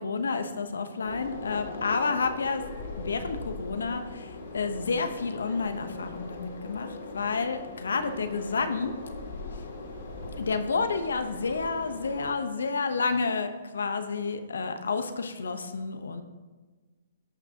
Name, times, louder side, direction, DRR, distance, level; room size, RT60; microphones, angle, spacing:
voice 1, 0.0-2.6 3.0-8.9 10.4-16.2, left 4 dB, 85° left, 8 dB, 0.8 m, -30 dB
sound 1, 1.0-12.3, left 3 dB, 70° left, 2.3 m, -40 dB
13.5 x 6.0 x 2.9 m, 1.3 s
hypercardioid pair, 140°, 0 cm